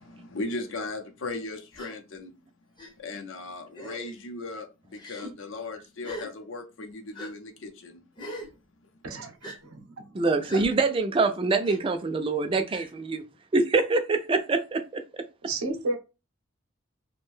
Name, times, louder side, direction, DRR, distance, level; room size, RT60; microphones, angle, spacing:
voice 1, 0.0-2.3 3.0-8.0, left 2 dB, 60° left, 0.6 m, -37 dB
Gasp, 1.7-1.9 2.8-2.9 3.7-4.1 5.0-5.3 6.0-6.3 7.1-7.3 8.2-8.5 9.4-9.6 10.5-10.7 11.6-11.8 12.7-12.9, equal, 20° left, 0.6 m, -40 dB
voice 2, 9.0-10.0 10.5-10.6 15.4-16.0, right 2 dB, 90° right, 0.7 m, -32 dB
voice 3, 10.1-13.2 13.5-14.8, right 3 dB, 25° right, 0.3 m, -24 dB
2.6 x 2.1 x 3.1 m
head